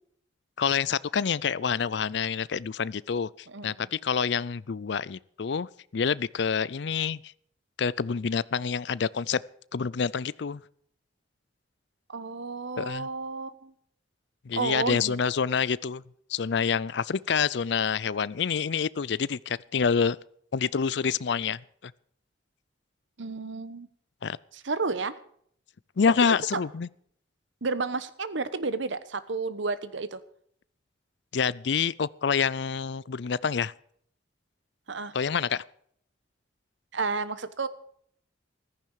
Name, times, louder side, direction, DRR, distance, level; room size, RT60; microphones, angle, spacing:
voice 1, 0.6-7.3 7.8-9.4 9.7-10.6 12.8-13.1 14.5-16.0 16.3-20.2 20.5-21.9 24.2-24.4 26.0-26.9 31.3-33.7 35.1-35.6, left 6 dB, 65° left, 0.5 m, -27 dB
voice 2, 3.5-3.9 12.1-13.7 14.5-15.2 23.2-23.9 24.5-25.1 26.2-26.6 27.6-30.2 34.9-35.1 36.9-37.7, right 4 dB, 80° right, 1.1 m, -31 dB
15.0 x 14.0 x 4.8 m
head